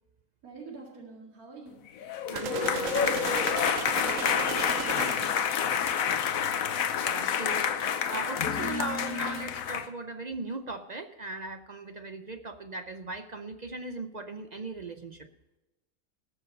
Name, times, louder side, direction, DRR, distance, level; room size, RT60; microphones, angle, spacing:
voice 1, 0.4-1.8 3.9-5.2, right 4 dB, 85° right, -2 dB, 2.6 m, -46 dB
sound 1, 2.0-9.9, left 7 dB, 75° left, 1.2 m, -28 dB
voice 2, 2.3-3.2 7.0-15.3, right 3 dB, 50° right, 8 dB, 0.5 m, -38 dB
sound 2, 2.4-5.5, right 9 dB, 70° right, 1.0 m, -36 dB
19.5 x 7.1 x 5.3 m, 1.0 s
omnidirectional pair, 1.5 m